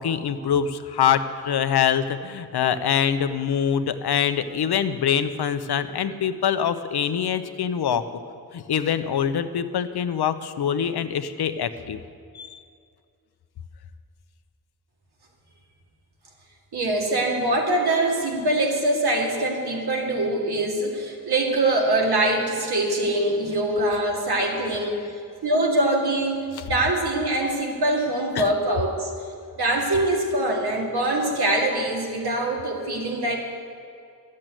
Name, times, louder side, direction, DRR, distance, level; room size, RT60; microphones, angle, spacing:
voice 1, 0.0-8.0 8.5-12.0 12.3-12.6 26.6-26.7 28.4-28.5, left 8 dB, 85° left, 11 dB, 0.8 m, -24 dB
voice 2, 16.7-25.1 25.4-29.1 29.6-33.4, right 1 dB, 85° right, 0 dB, 2.4 m, -23 dB
12.5 x 7.6 x 8.9 m, 2.4 s
wide cardioid pair, 130°, 38 cm